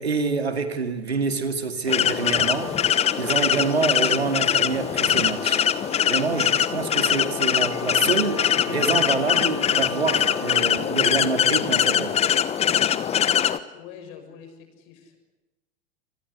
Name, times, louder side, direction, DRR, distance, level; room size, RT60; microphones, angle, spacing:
voice 1, 0.0-2.7 3.2-5.6 6.0-12.3, right 4 dB, 75° right, 2.5 m, -27 dB
sound 1, 1.9-13.6, left 9 dB, 20° left, 1.1 m, -22 dB
sound 2, 2.2-10.6, right 3 dB, 10° right, 3.0 m, -41 dB
voice 2, 13.7-15.2, left 7 dB, 45° left, 6.3 m, -44 dB
27.0 x 20.0 x 8.4 m
figure-of-eight pair, 90°, 32 cm